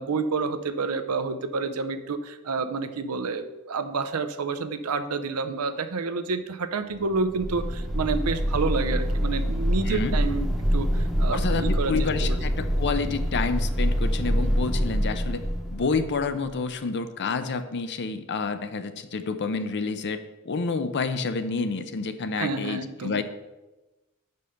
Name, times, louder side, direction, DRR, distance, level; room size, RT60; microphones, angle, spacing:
voice 1, 0.0-10.9 11.2-11.9 12.2-12.4 22.4-23.2, right 4 dB, 75° right, 10 dB, 0.6 m, -29 dB
sound 1, 7.1-16.4, equal, ahead, 0.9 m, -26 dB
voice 2, 9.9-10.2 11.3-15.4 15.7-20.2 20.4-23.2, left 4 dB, 55° left, 10 dB, 0.6 m, -29 dB
5.6 x 5.4 x 6.5 m, 1.1 s
head